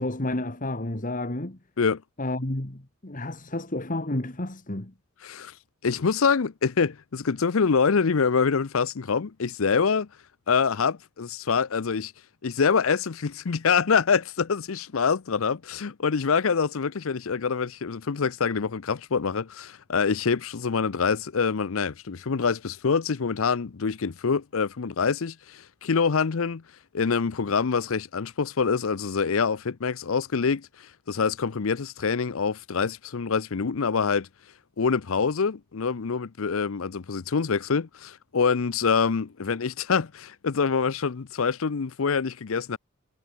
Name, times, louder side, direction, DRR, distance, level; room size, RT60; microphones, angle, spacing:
voice 1, 0.0-1.6 2.2-4.9, left 1 dB, 35° left, 1.9 m, -31 dB
voice 2, 5.2-5.5 5.8-10.1 10.5-12.1 12.4-26.6 26.9-34.3 34.8-42.8, left 5 dB, 65° left, 0.6 m, -25 dB
head